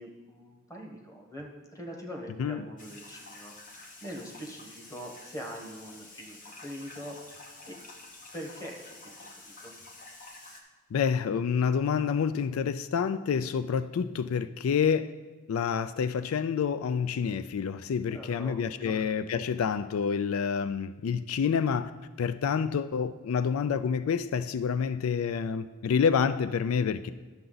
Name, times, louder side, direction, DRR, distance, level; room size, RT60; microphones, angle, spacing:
voice 1, 0.0-3.5 4.0-7.2 7.7-7.8 8.3-9.7 18.1-19.1, equal, 15° left, 1 dB, 1.2 m, -43 dB
sound 1, 2.8-10.6, left 2 dB, 40° left, 1.1 m, -49 dB
voice 2, 10.9-15.1 15.5-21.9 22.2-27.1, left 6 dB, 90° left, 13 dB, 0.4 m, -28 dB
10.5 x 6.8 x 3.9 m, 1.4 s
head